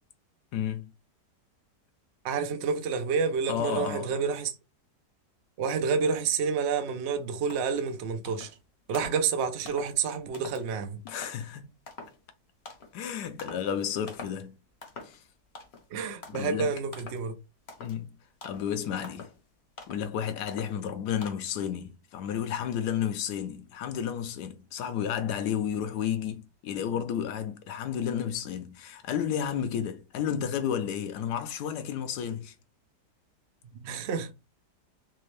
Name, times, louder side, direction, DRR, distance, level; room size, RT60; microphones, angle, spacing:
voice 1, 0.5-0.9 3.5-4.1 11.1-11.7 12.9-14.6 15.0-15.2 16.3-16.7 17.8-18.1 18.4-19.3 19.9-32.5, left 9 dB, 75° left, 1.1 m, -32 dB
voice 2, 2.2-4.5 5.6-8.5 8.9-11.0 15.9-17.4 33.7-34.3, right 5 dB, 70° right, 0.6 m, -29 dB
sound 1, 7.1-7.2 7.5-7.9 8.2-8.6 8.9-9.3 9.7-9.9 10.3-10.6 11.1-11.4 11.9-12.2 12.7-13.0 13.4-13.7 14.1-14.4 14.8-15.2 15.5-15.9 16.2-16.5 16.9-17.3 17.7-18.0 18.4-18.7 19.0-19.4 19.8-20.1 20.5-20.8 21.2-21.3, left 4 dB, 50° left, 0.9 m, -45 dB
3.5 x 2.9 x 3.2 m
omnidirectional pair, 1.9 m